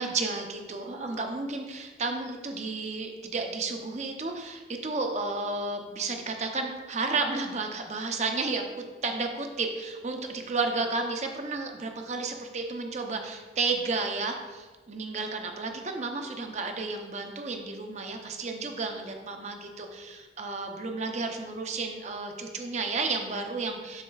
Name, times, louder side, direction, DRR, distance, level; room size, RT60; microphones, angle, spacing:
voice 1, 0.0-24.0, right 3 dB, 40° right, 4 dB, 0.6 m, -32 dB
12.0 x 4.3 x 2.3 m, 1.3 s
head